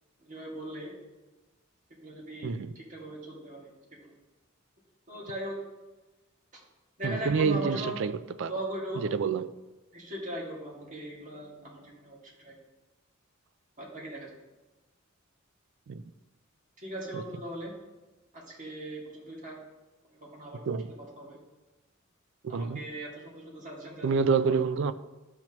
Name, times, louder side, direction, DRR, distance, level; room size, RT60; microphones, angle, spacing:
voice 1, 0.2-0.9 2.0-4.1 5.1-5.6 6.5-6.6 7.0-8.1 8.5-9.1 9.9-12.5 13.8-14.4 16.8-17.8 18.3-19.6 20.0-21.4 22.5-24.6, right 1 dB, 40° right, 2.1 m, -39 dB
voice 2, 7.0-8.1 8.4-8.5 9.1-9.5 15.9-16.0 20.7-20.9 22.4-22.8 24.0-24.9, right 5 dB, 65° right, 0.4 m, -27 dB
12.0 x 5.8 x 3.0 m
head